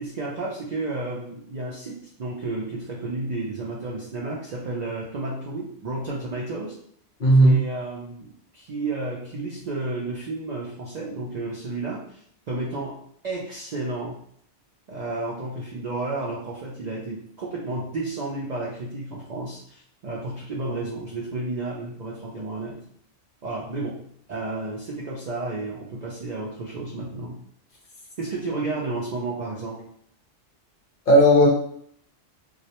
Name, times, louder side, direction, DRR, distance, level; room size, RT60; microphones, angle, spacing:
voice 1, 0.0-6.7 7.4-14.2 14.9-22.8 23.4-27.4 28.2-29.8, right 2 dB, 70° right, -4 dB, 0.4 m, -32 dB
voice 2, 7.2-7.6 31.1-31.5, right 1 dB, 55° left, -3 dB, 0.7 m, -14 dB
2.3 x 2.0 x 2.8 m, 0.66 s
omnidirectional pair, 1.2 m